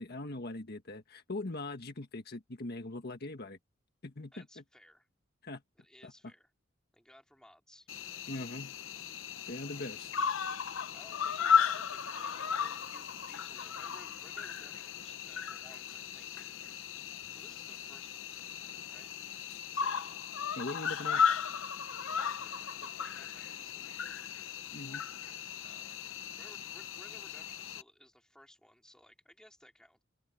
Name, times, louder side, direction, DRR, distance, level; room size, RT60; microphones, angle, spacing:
voice 1, 0.0-3.6 4.0-4.4 5.4-5.6 6.0-6.1 8.3-8.7 9.5-10.1 20.6-21.2 24.7-25.0, left 2 dB, 55° left, 1.6 m, -41 dB
voice 2, 4.3-5.1 5.8-6.5 6.9-7.9 9.5-10.1 10.9-16.6 17.3-18.3 18.9-19.1 19.7-20.2 21.4-21.6 22.1-23.9 25.6-26.0 26.4-30.0, equal, 5° left, 3.3 m, -59 dB
Cricket, 7.9-27.8, left 7 dB, 85° left, 0.9 m, -35 dB
open air
head